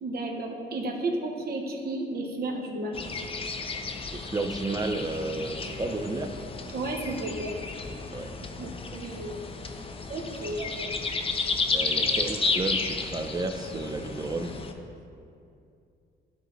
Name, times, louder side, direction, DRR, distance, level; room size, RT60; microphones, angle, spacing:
voice 1, 0.0-3.0 6.7-7.5 8.6-9.4 10.1-10.9, right 2 dB, 50° right, 1 dB, 1.0 m, -33 dB
sound 1, 2.9-14.7, left 4 dB, 30° left, 0.5 m, -32 dB
voice 2, 4.1-6.3 8.1-8.4 11.7-14.6, right 2 dB, 20° right, 6 dB, 0.5 m, -32 dB
11.5 x 3.9 x 3.1 m, 2.6 s
cardioid pair, 90°, 20 cm